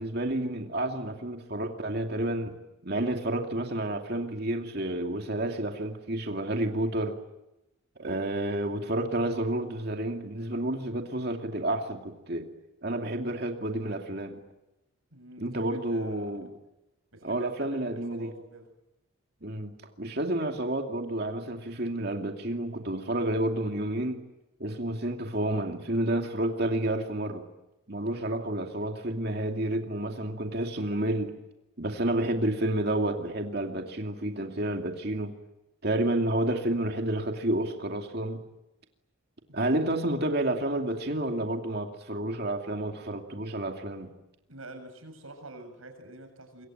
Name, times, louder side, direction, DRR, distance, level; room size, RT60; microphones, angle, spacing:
voice 1, 0.0-2.5 2.8-7.2 8.0-12.5 12.8-14.4 15.4-16.5 17.2-18.3 19.4-24.2 24.6-27.4 27.9-31.3 31.8-35.3 35.8-38.4 39.5-44.1, right 1 dB, 50° right, 3 dB, 2.6 m, -30 dB
voice 2, 15.1-16.4 17.1-18.7 39.5-39.8 44.5-46.7, right 1 dB, 85° right, 7 dB, 7.2 m, -47 dB
27.0 x 23.5 x 9.0 m, 0.93 s
head